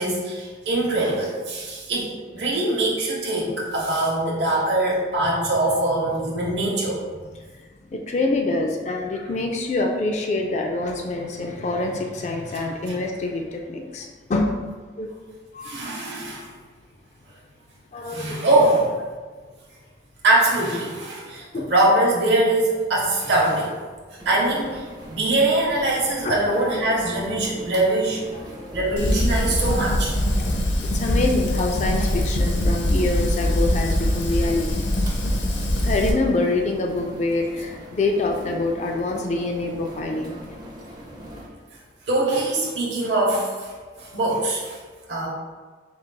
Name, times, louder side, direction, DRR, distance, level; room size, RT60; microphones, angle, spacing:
voice 1, 0.0-7.2 15.6-16.5 18.1-18.8 20.2-21.4 21.7-23.8 24.1-28.2 28.7-30.1 31.1-31.2 42.1-44.8 45.1-45.3, right 2 dB, 70° right, -4 dB, 0.8 m, -22 dB
voice 2, 7.5-14.6 15.0-15.1 15.5-15.9 17.9-18.8 21.5-21.7 26.2-26.4 28.3-28.6 30.3-30.5 30.9-34.9 35.8-40.3, left 2 dB, 35° left, 2 dB, 0.3 m, -26 dB
sound 1, 24.2-41.5, equal, 20° right, 0.5 m, -40 dB
Fire, 29.0-36.1, left 1 dB, 75° left, 0.6 m, -23 dB
4.4 x 3.9 x 2.2 m, 1.4 s
head